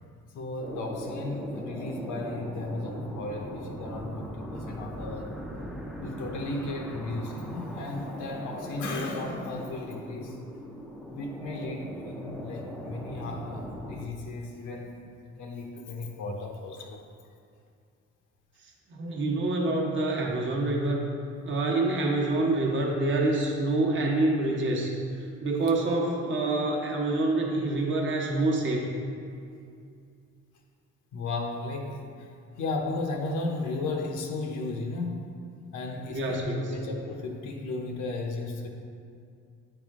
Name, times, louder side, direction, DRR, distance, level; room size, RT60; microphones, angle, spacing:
voice 1, 0.3-5.4 6.0-10.4 11.1-17.0 31.1-32.3 32.6-35.3 35.7-38.7, left 2 dB, 85° left, 2 dB, 0.8 m, -35 dB
sound 1, 0.6-14.1, equal, ahead, 0.5 m, -39 dB
voice 2, 18.9-21.0 21.4-25.0 25.4-28.8 36.1-36.8, right 2 dB, 40° right, -2 dB, 0.9 m, -26 dB
8.9 x 3.5 x 3.6 m, 2.4 s
cardioid pair, 90°, 30 cm